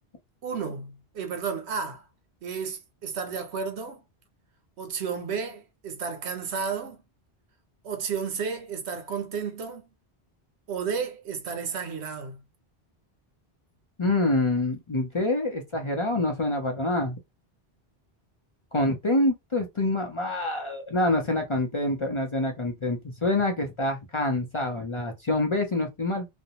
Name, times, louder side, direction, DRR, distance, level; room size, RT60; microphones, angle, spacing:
voice 1, 0.4-2.0 2.4-4.0 4.8-7.0 7.8-9.9 10.7-12.4, right 6 dB, 90° right, 1.0 m, -32 dB
voice 2, 14.0-17.2 18.7-26.3, left 2 dB, 35° left, 0.5 m, -26 dB
2.6 x 2.0 x 2.8 m
omnidirectional pair, 1.1 m